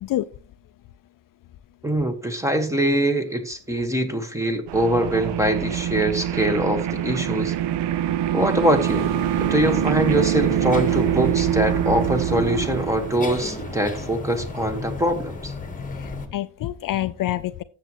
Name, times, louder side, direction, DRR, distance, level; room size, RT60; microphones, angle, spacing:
voice 1, 1.8-7.5 8.3-9.1 9.4-15.5, right 1 dB, 5° right, 1.4 m, -23 dB
sound 1, 4.7-14.6, right 11 dB, 75° right, 0.7 m, -25 dB
sound 2, 8.8-16.3, left 3 dB, 20° left, 1.4 m, -34 dB
voice 2, 15.9-17.6, left 13 dB, 50° left, 0.5 m, -27 dB
13.5 x 7.5 x 3.0 m
cardioid pair, 130°, 43 cm